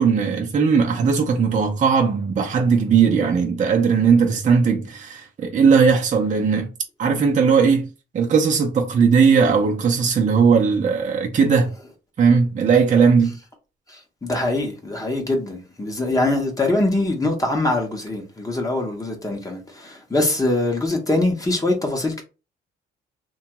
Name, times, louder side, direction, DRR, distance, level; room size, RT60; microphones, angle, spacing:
voice 1, 0.0-6.7 7.0-7.9 8.1-11.7 12.2-13.3, right 5 dB, 40° right, 0.6 m, -18 dB
voice 2, 13.9-22.2, left 2 dB, 15° left, 0.8 m, -23 dB
2.8 x 2.3 x 2.8 m
cardioid pair, 90°, 20 cm